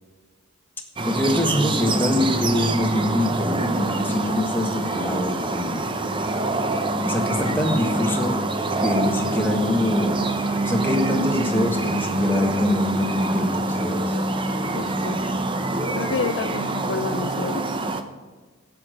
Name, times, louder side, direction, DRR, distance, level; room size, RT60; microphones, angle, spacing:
voice 1, 1.0-5.9 7.0-8.4 8.8-10.2 10.6-14.1, left 1 dB, 10° left, 1 dB, 1.6 m, -24 dB
sound 1, 1.0-18.0, right 2 dB, 25° right, 0.7 m, -25 dB
voice 2, 14.7-15.2 16.0-17.7, left 4 dB, 65° left, 11 dB, 0.5 m, -29 dB
11.5 x 8.3 x 7.7 m, 1.4 s
head